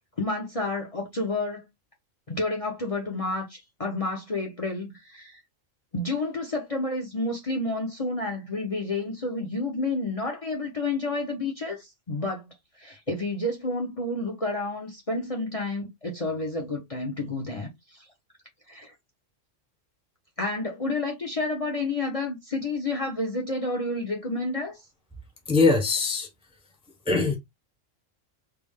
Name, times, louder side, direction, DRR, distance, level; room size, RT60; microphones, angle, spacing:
voice 1, 0.2-1.7 2.3-5.4 5.9-18.0 18.7-18.9 20.4-24.8, left 2 dB, 35° left, 0.8 m, -30 dB
voice 2, 25.5-26.3 27.1-27.4, left 4 dB, 5° right, 0.7 m, -21 dB
3.4 x 2.4 x 3.5 m
omnidirectional pair, 1.3 m